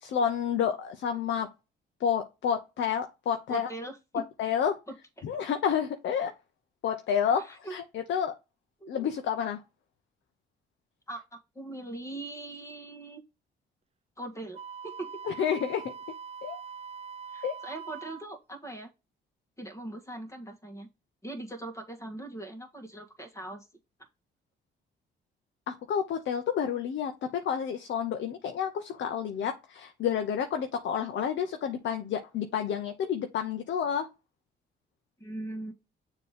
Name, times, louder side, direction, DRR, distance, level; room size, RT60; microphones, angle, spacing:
voice 1, 0.0-1.5 2.0-3.7 4.4-4.8 5.2-6.3 6.8-8.3 8.9-9.6 15.3-15.8 16.4-16.6 17.4-17.5 25.7-27.1 27.4-34.1, left 8 dB, 70° left, 0.8 m, -29 dB
voice 2, 3.5-4.2 4.9-5.3 7.4-7.7 8.8-8.9 11.1-13.2 14.2-14.6 14.8-15.1 17.3-18.9 19.6-20.9 21.2-23.7 35.2-35.7, right 2 dB, 15° left, 1.8 m, -40 dB
Wind instrument woodwind instrument, 14.5-18.3, right 6 dB, 30° right, 0.5 m, -43 dB
6.8 x 3.1 x 5.0 m
cardioid pair, 90°, 20 cm